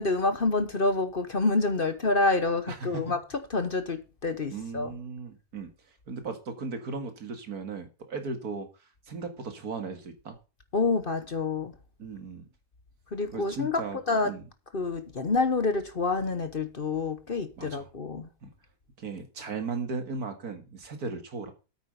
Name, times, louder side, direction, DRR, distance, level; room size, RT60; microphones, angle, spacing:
voice 1, 0.0-3.2 3.5-4.9 10.7-11.7 13.1-14.3 14.7-18.3, left 3 dB, 40° left, 1.1 m, -27 dB
voice 2, 2.7-3.0 4.5-5.7 6.1-8.7 9.1-10.4 12.0-12.4 13.3-14.4 17.6-17.9 18.4-18.5 19.0-21.5, right 4 dB, 75° right, 2.3 m, -36 dB
9.0 x 8.1 x 5.2 m
omnidirectional pair, 1.6 m